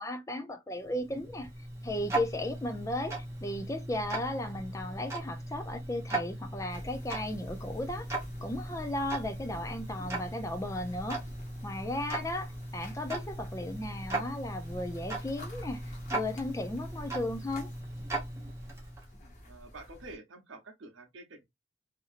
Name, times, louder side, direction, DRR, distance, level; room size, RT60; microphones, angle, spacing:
voice 1, 0.0-1.5 1.8-8.1 8.4-11.2 11.6-17.7, left 1 dB, 15° left, 0.4 m, -35 dB
Tick-tock, 0.8-19.1, right 2 dB, 15° right, 0.8 m, -38 dB
sound 1, 6.7-20.2, equal, 40° left, 1.1 m, -49 dB
voice 2, 19.5-21.4, right 2 dB, 90° right, 0.8 m, -48 dB
2.8 x 2.6 x 2.4 m
head